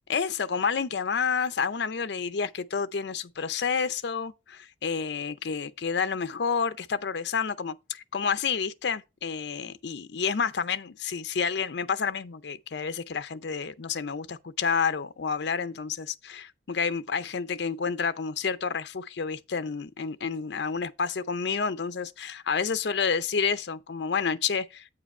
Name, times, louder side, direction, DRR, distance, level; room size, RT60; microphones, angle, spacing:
voice 1, 0.1-24.9, left 6 dB, 70° left, 0.5 m, -29 dB
8.4 x 4.9 x 4.3 m
head